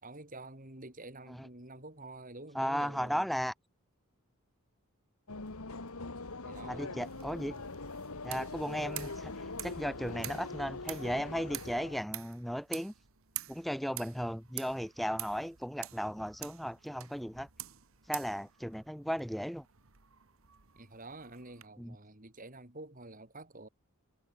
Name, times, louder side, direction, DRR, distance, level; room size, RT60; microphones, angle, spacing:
voice 1, 0.0-3.3 6.4-7.0 20.8-23.7, right 2 dB, 40° right, 3.5 m, -48 dB
voice 2, 2.5-3.5 6.7-7.5 8.2-9.3 9.6-12.9 13.5-17.5 18.1-19.6 21.8-22.0, equal, ahead, 1.6 m, -35 dB
sound 1, 5.3-12.0, left 3 dB, 80° left, 2.0 m, -42 dB
sound 2, 7.0-21.7, right 15 dB, 65° right, 1.5 m, -48 dB
head